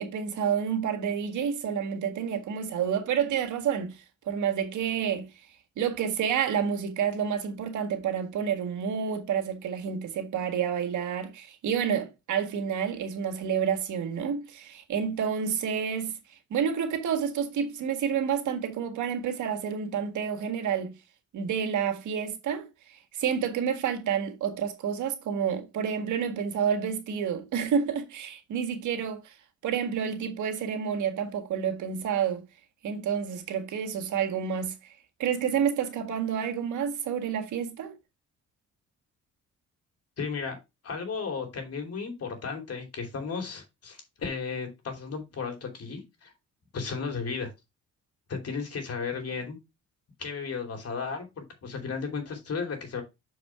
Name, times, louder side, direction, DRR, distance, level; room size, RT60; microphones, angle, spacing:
voice 1, 0.0-5.3 5.8-20.9 21.3-29.3 29.6-32.4 32.8-34.9 35.2-37.9, right 7 dB, 75° right, 1.7 m, -29 dB
voice 2, 40.2-40.5 40.8-46.3 46.7-47.5 48.3-49.6 50.2-53.0, left 5 dB, 50° left, 2.9 m, -34 dB
6.5 x 4.8 x 4.8 m
cardioid pair, 90°, 30 cm